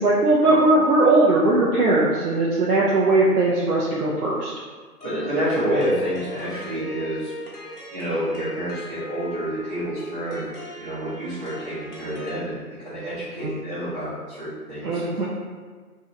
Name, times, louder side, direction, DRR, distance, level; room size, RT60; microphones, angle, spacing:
voice 1, 0.0-4.5 13.4-13.5 14.8-15.3, right 2 dB, 70° right, -6 dB, 0.7 m, -19 dB
sound 1, 5.0-12.4, left 2 dB, 80° left, 1.0 m, -38 dB
voice 2, 5.0-7.3 7.9-10.5 10.8-15.3, right 1 dB, 25° right, -15 dB, 0.9 m, -28 dB
2.7 x 2.6 x 3.2 m, 1.5 s
figure-of-eight pair, 150°, 46 cm